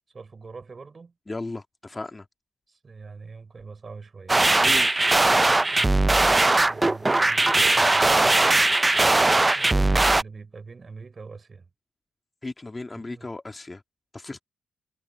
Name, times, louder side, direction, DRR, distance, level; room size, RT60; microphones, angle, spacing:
voice 1, 0.1-1.1 2.7-4.4 5.6-8.2 9.5-11.7 12.9-13.3, right 4 dB, 35° right, 7.3 m, -43 dB
voice 2, 1.3-2.3 4.6-4.9 12.4-13.8 14.1-14.4, left 2 dB, 25° left, 2.3 m, -35 dB
sound 1, 4.3-10.2, right 2 dB, 20° right, 0.8 m, -19 dB
figure-of-eight pair, 40°, 0 cm